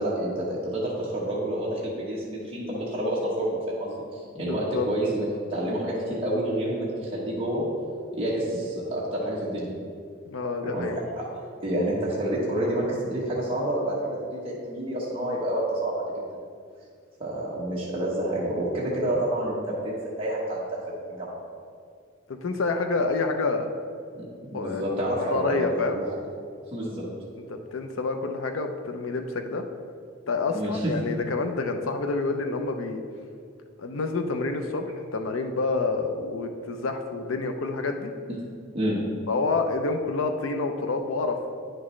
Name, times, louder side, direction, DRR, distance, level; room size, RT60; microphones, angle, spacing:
voice 1, 0.0-7.6 8.1-9.7 10.6-11.2 11.6-14.2 14.4-16.3 17.2-20.8 21.1-21.3 24.2-26.1 26.7-27.0 30.5-30.9 38.7-39.0, right 1 dB, 30° right, -6 dB, 1.2 m, -28 dB
voice 2, 4.4-4.9 10.3-11.0 22.3-23.7 24.5-24.8 25.3-26.0 27.5-29.6 30.3-33.0 33.8-34.8 35.1-38.1 39.3-41.4, left 3 dB, 80° left, 5 dB, 0.6 m, -28 dB
9.5 x 6.0 x 3.2 m, 2.2 s
head